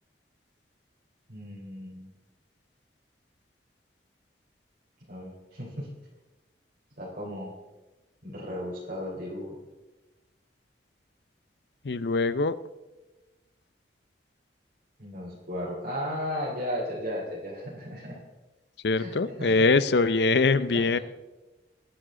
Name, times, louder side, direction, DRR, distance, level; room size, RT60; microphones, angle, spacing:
voice 1, 1.3-2.1 5.1-5.9 7.0-7.5 8.2-9.6 15.0-18.2 18.9-19.5 20.7-21.0, equal, 60° right, -6 dB, 3.7 m, -35 dB
voice 2, 11.8-12.6 18.8-21.0, left 3 dB, 70° left, 15 dB, 0.6 m, -23 dB
22.0 x 10.0 x 3.8 m, 1.1 s
head